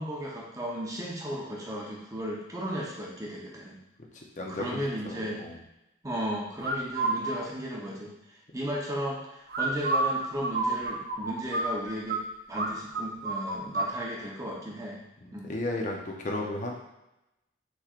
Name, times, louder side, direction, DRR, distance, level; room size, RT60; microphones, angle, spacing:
voice 1, 0.0-3.8 4.5-5.4 6.0-8.1 8.5-12.2 12.5-15.0 15.3-15.5, equal, 15° right, -3 dB, 0.8 m, -35 dB
voice 2, 4.1-5.6 15.2-16.7, left 2 dB, 40° left, 0 dB, 0.7 m, -34 dB
sound 1, 6.6-7.2 9.5-12.2 12.5-12.7 12.9-13.9, right 3 dB, 55° right, 0.6 m, -29 dB
6.2 x 3.3 x 2.4 m, 0.90 s
head